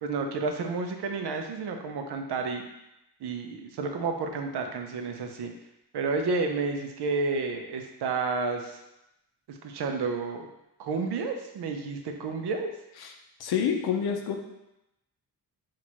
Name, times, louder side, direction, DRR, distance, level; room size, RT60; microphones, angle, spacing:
voice 1, 0.0-2.6 3.2-5.5 5.9-8.8 9.5-10.5 10.8-12.7, right 4 dB, 90° right, 4 dB, 0.6 m, -31 dB
voice 2, 13.4-14.4, left 7 dB, 75° left, 4 dB, 0.7 m, -27 dB
5.9 x 2.5 x 3.0 m, 0.88 s
wide cardioid pair, 135°, 38 cm